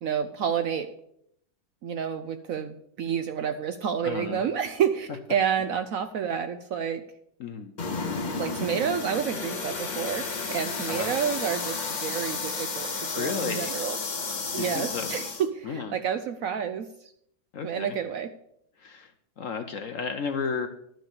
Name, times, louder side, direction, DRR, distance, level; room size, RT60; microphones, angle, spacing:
voice 1, 0.0-0.9 1.8-7.0 8.4-14.0 14.5-16.9 17.6-18.3, right 8 dB, 75° right, 9 dB, 0.7 m, -29 dB
voice 2, 4.0-4.4 7.4-7.7 10.9-11.1 13.1-13.7 14.5-15.2 15.6-16.0 17.5-18.0 18.8-20.7, left 5 dB, 60° left, 7 dB, 0.8 m, -33 dB
sound 1, 7.8-15.5, left 4 dB, 35° left, 0.8 m, -32 dB
11.5 x 6.2 x 6.6 m, 0.72 s
omnidirectional pair, 2.1 m